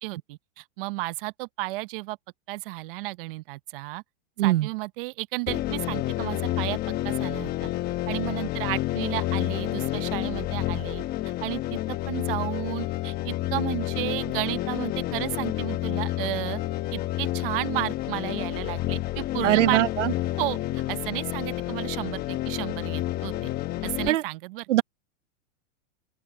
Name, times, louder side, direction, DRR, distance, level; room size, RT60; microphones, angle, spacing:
voice 1, 0.0-2.2 2.5-4.0 4.4-6.8 7.0-7.7 8.1-11.0 11.4-16.6 16.9-19.8 20.4-23.5 23.8-24.7, right 21 dB, 50° right, 0.9 m, -33 dB
voice 2, 4.4-4.7 19.4-20.1 24.1-24.2 24.7-24.8, right 15 dB, 85° right, 0.8 m, -21 dB
sound 1, 5.5-24.1, left 15 dB, 25° left, 1.1 m, -29 dB
open air
supercardioid pair, 150°, 36 cm